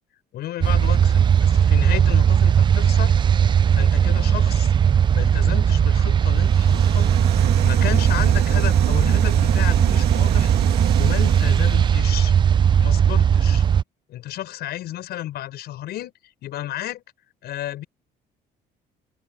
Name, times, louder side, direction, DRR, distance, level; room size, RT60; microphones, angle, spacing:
voice 1, 0.3-3.1 3.7-4.7 5.1-7.1 7.6-10.5 11.0-12.3 12.8-13.6 14.1-16.1 16.4-17.0 17.4-17.9, left 13 dB, 70° left, 7.0 m, -32 dB
sound 1, 0.6-13.8, right 8 dB, 30° right, 0.3 m, -18 dB
sound 2, 6.3-12.0, right 13 dB, 75° right, 2.8 m, -27 dB
open air
cardioid pair, 110°, 17 cm